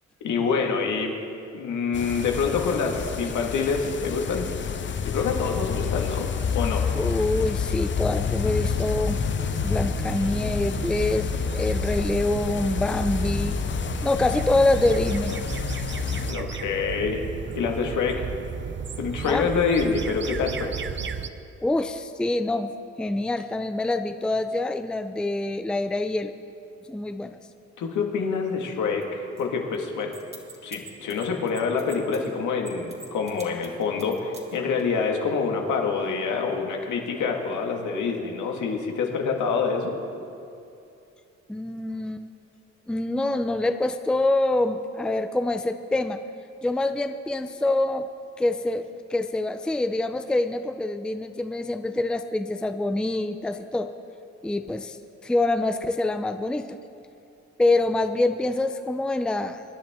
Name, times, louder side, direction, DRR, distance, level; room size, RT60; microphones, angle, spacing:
voice 1, 0.2-1.1 1.5-4.5 5.0-6.3 6.5-6.9 16.3-17.3 17.5-18.3 19.0-20.7 27.8-30.1 30.6-39.9, left 5 dB, 75° left, 2 dB, 1.9 m, -26 dB
sound 1, 1.9-16.3, left 7 dB, 40° left, 0.7 m, -29 dB
voice 2, 6.9-9.2 9.6-13.6 14.0-15.3 19.3-19.5 21.6-22.7 23.0-26.3 26.9-27.4 41.5-42.2 42.9-46.2 46.6-48.1 48.4-53.9 54.4-55.0 55.2-56.8 57.6-59.6, left 2 dB, 5° left, 9 dB, 0.5 m, -25 dB
sound 2, 8.4-21.3, right 6 dB, 40° right, 0.7 m, -34 dB
sound 3, 29.0-29.1 29.4-29.5 29.7-32.3 32.7-34.8, right 2 dB, 20° right, 2.2 m, -43 dB
24.0 x 10.0 x 3.7 m, 2.6 s
cardioid pair, 90°, 30 cm